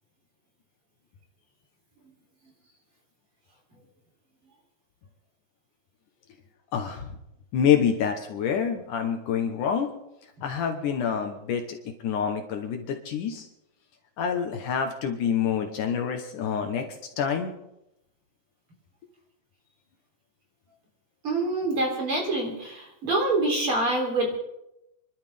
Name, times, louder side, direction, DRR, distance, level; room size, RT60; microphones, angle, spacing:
voice 1, 6.7-7.2 7.5-9.9 10.4-13.5 14.2-16.9 17.2-17.5, left 8 dB, 65° left, 4 dB, 2.6 m, -27 dB
voice 2, 21.2-24.4, right 2 dB, 40° right, 0 dB, 4.1 m, -26 dB
29.5 x 12.0 x 3.6 m, 0.85 s
omnidirectional pair, 4.1 m